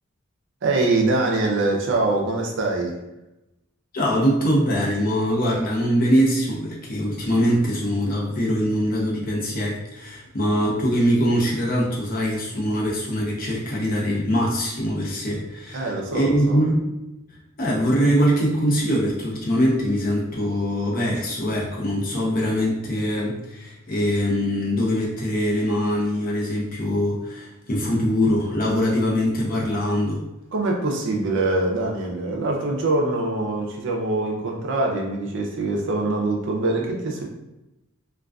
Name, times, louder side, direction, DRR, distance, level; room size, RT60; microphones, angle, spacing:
voice 1, 0.6-3.0 15.7-16.6 30.5-37.2, right 2 dB, 60° right, 0 dB, 0.5 m, -24 dB
voice 2, 3.9-16.9 17.6-30.2, equal, 45° left, -3 dB, 0.6 m, -23 dB
2.4 x 2.2 x 2.3 m, 0.94 s
head